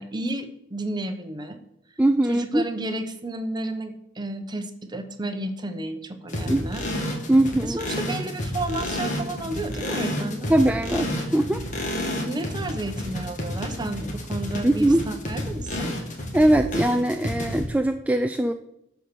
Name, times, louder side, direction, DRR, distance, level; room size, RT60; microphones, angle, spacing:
voice 1, 0.0-1.6 2.3-6.9 7.6-10.6 12.3-15.9, right 2 dB, 25° right, 8 dB, 0.9 m, -32 dB
voice 2, 2.0-2.7 6.5-6.7 7.3-7.8 10.5-11.6 14.6-15.0 16.3-18.5, right 1 dB, 10° right, 7 dB, 0.3 m, -21 dB
sound 1, 6.3-17.7, left 1 dB, 40° left, 2.0 m, -30 dB
11.5 x 4.6 x 6.8 m, 0.82 s
head